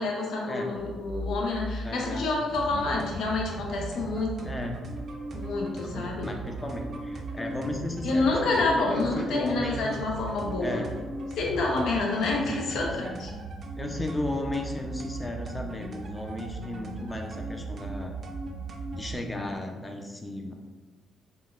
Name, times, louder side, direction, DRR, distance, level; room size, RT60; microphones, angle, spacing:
voice 1, 0.0-4.5 5.3-6.3 8.0-10.9 11.4-13.3, left 3 dB, 70° left, -1 dB, 0.6 m, -28 dB
sound 1, 0.7-3.6, left 1 dB, 40° left, 1.4 m, -38 dB
voice 2, 1.8-2.3 2.8-2.9 4.4-4.8 5.8-10.0 10.6-10.9 12.3-13.2 13.8-18.1 18.9-20.5, left 1 dB, 20° left, 2 dB, 0.5 m, -35 dB
sound 2, 2.5-19.2, right 3 dB, 50° right, 0.4 m, -37 dB
3.6 x 2.1 x 2.4 m, 1.3 s
supercardioid pair, 70°, 0 cm